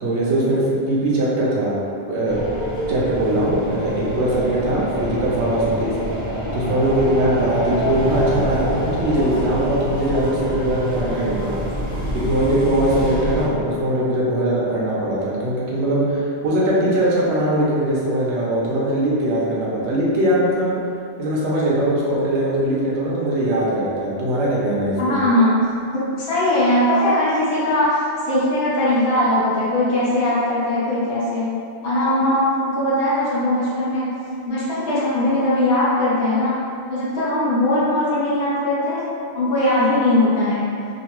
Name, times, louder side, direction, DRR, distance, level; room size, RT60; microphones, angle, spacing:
voice 1, 0.0-1.8 2.1-2.4 2.9-5.9 6.5-11.6 12.1-20.7 21.2-25.2, right 1 dB, 85° right, -5 dB, 1.0 m, -21 dB
sound 1, 2.3-13.4, equal, 10° right, 0.9 m, -26 dB
voice 2, 25.0-25.5 25.9-28.0 28.3-31.6 31.8-34.1 34.4-36.6 36.9-39.0 39.3-40.6, left 1 dB, 65° left, -9 dB, 1.1 m, -20 dB
3.0 x 2.6 x 2.9 m, 2.5 s
omnidirectional pair, 1.1 m